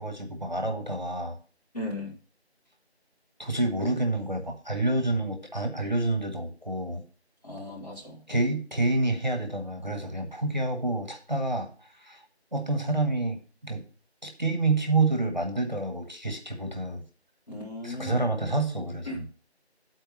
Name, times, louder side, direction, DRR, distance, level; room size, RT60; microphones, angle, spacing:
voice 1, 0.0-1.4 3.4-7.0 8.3-12.2 12.5-13.8 14.2-17.0 17.8-19.1, right 2 dB, 40° right, 5 dB, 1.1 m, -28 dB
voice 2, 1.7-2.1 7.4-8.2 17.5-18.3 19.1-19.2, left 1 dB, 35° left, -3 dB, 2.3 m, -36 dB
9.6 x 4.4 x 6.4 m, 0.39 s
figure-of-eight pair, 180°, 33 cm